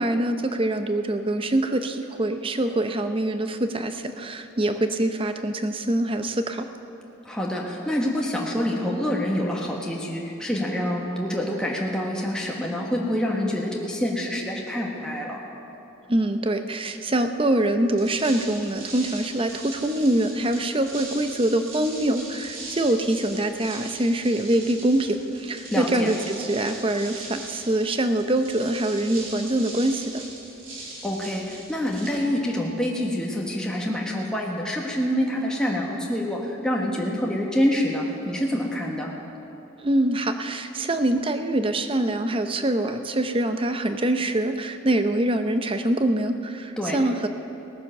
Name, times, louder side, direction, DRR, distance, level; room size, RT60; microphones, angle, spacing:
voice 1, 0.0-6.7 16.1-30.2 39.8-47.3, right 1 dB, 25° right, 8 dB, 0.6 m, -24 dB
voice 2, 7.2-15.4 25.7-26.1 31.0-39.1 46.8-47.0, equal, 5° left, -3 dB, 1.3 m, -26 dB
sound 1, 17.8-32.7, right 2 dB, 70° right, 3.3 m, -40 dB
18.5 x 9.5 x 6.6 m, 2.9 s
head